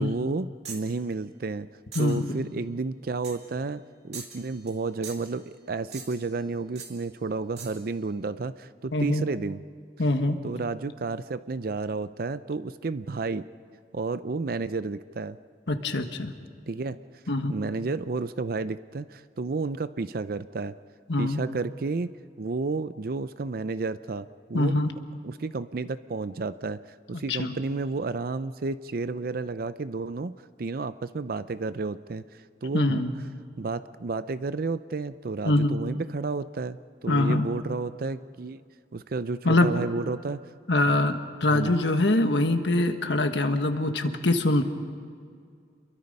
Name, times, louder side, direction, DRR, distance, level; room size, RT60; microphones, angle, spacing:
voice 1, 0.0-1.7 2.0-9.6 10.4-13.5 13.9-15.4 16.7-17.0 17.5-20.8 21.2-22.1 22.4-24.8 25.2-26.8 27.1-33.0 33.6-38.6 38.9-40.4 41.5-41.8, right 3 dB, 55° right, 14 dB, 0.5 m, -31 dB
sound 1, 0.6-1.0 1.9-2.2 3.2-3.5 4.1-4.8 5.0-5.4 5.9-6.3 6.8-7.0 7.6-7.8, right 6 dB, 35° right, 2.5 m, -42 dB
voice 2, 1.9-2.4 8.9-9.2 10.0-10.4 15.7-16.3 17.3-17.6 21.1-21.4 24.5-24.9 27.3-27.6 32.7-33.1 35.4-35.8 37.1-37.5 39.4-39.8 40.7-44.6, left 2 dB, 75° left, 6 dB, 1.4 m, -24 dB
28.5 x 22.5 x 5.4 m, 2.2 s
head